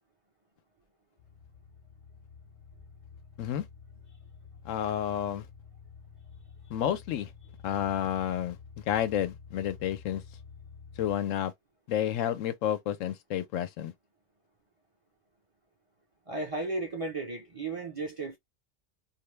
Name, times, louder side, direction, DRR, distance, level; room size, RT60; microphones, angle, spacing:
sound 1, 1.2-11.1, left 6 dB, 70° left, 0.4 m, -51 dB
voice 1, 4.6-5.5 6.7-7.3 7.6-10.2 11.0-11.5 11.9-13.9, left 10 dB, 85° left, 1.0 m, -30 dB
voice 2, 16.3-18.4, right 3 dB, 35° right, 0.5 m, -34 dB
2.5 x 2.1 x 3.0 m
omnidirectional pair, 1.3 m